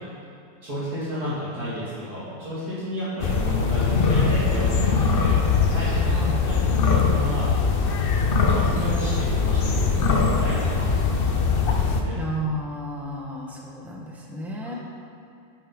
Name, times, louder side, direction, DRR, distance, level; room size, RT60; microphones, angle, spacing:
voice 1, 0.6-6.1 6.4-7.5 8.5-11.1 11.5-12.2 14.6-14.8, equal, 55° right, -11 dB, 2.9 m, -32 dB
sound 1, 3.2-12.0, left 5 dB, 75° left, 0.5 m, -21 dB
voice 2, 6.1-6.4 12.1-14.7, equal, ahead, -3 dB, 1.1 m, -32 dB
10.5 x 9.5 x 3.9 m, 2.6 s
omnidirectional pair, 2.0 m